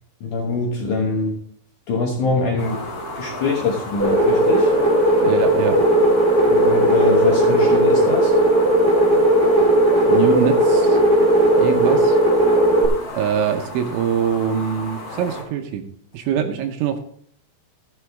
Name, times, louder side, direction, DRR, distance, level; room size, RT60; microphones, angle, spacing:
voice 1, 0.2-1.4 1.9-2.8 3.1-4.7 6.5-8.3, left 4 dB, 75° left, 0 dB, 1.8 m, -23 dB
sound 1, 2.6-15.4, left 1 dB, 30° left, 4.1 m, -33 dB
sound 2, 4.0-12.8, right 1 dB, 60° right, 1.0 m, -16 dB
voice 2, 5.2-5.8 10.1-11.0 11.6-12.2 13.1-17.0, right 8 dB, 80° right, 5 dB, 3.1 m, -23 dB
14.5 x 7.8 x 3.5 m, 0.64 s
omnidirectional pair, 5.7 m